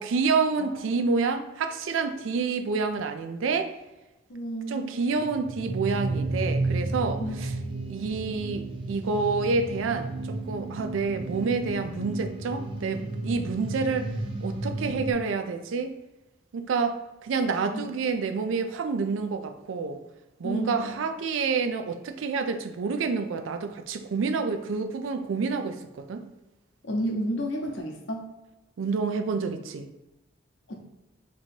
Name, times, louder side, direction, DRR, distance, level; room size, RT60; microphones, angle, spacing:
voice 1, 0.0-3.7 4.7-7.5 7.9-14.1 14.4-15.9 16.5-20.0 20.4-26.2 28.8-29.9, right 4 dB, 80° right, 8 dB, 0.4 m, -28 dB
voice 2, 4.3-4.9 7.2-7.3 17.7-17.9 20.4-20.9 26.8-28.3 30.7-30.8, equal, 65° left, 1 dB, 0.8 m, -31 dB
sound 1, 5.2-15.1, right 2 dB, 25° right, 0.5 m, -32 dB
3.0 x 2.8 x 4.3 m, 1.0 s
head